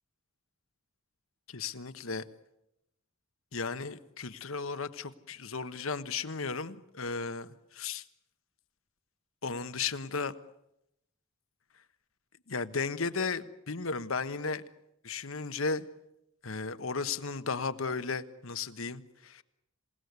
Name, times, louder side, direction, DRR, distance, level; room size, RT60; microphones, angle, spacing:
voice 1, 1.5-2.2 3.5-8.0 9.4-10.3 12.5-14.6 15.0-15.9 16.4-19.4, left 4 dB, 75° left, 12 dB, 1.3 m, -35 dB
27.5 x 18.0 x 9.6 m, 0.85 s
head